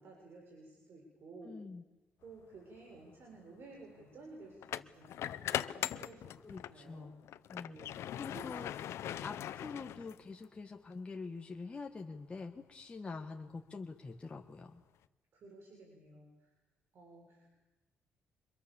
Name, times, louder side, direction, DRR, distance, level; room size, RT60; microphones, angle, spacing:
voice 1, 0.0-1.6 2.2-7.1 7.7-8.7 9.0-9.3 15.3-16.5 16.9-17.6, right 2 dB, 55° right, 0 dB, 6.7 m, -54 dB
voice 2, 1.4-1.8 6.4-7.2 7.5-14.8, left 4 dB, 25° left, 3 dB, 1.7 m, -46 dB
sound 1, 2.6-2.8 4.6-6.8 7.2-10.4, left 11 dB, 75° left, 0.8 m, -40 dB
29.5 x 25.5 x 7.2 m, 1.1 s
cardioid pair, 125°, 5 cm